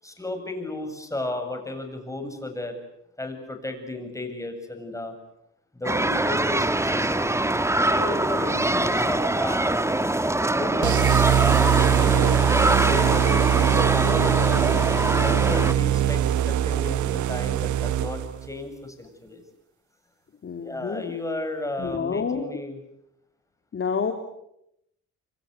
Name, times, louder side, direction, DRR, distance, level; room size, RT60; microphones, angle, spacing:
voice 1, 0.0-2.8 3.2-5.1 5.7-7.2 7.8-9.9 10.5-12.4 12.8-14.6 15.2-19.4 20.6-22.8, left 2 dB, 10° left, 6 dB, 7.9 m, -33 dB
sound 1, 5.8-15.7, right 1 dB, 10° right, 1.5 m, -23 dB
sound 2, 10.8-18.5, right 11 dB, 75° right, 1.1 m, -22 dB
voice 2, 20.4-21.1 21.8-22.5 23.7-24.1, left 6 dB, 45° left, 5 dB, 3.3 m, -28 dB
29.0 x 25.0 x 8.2 m, 0.78 s
cardioid pair, 90°, 30 cm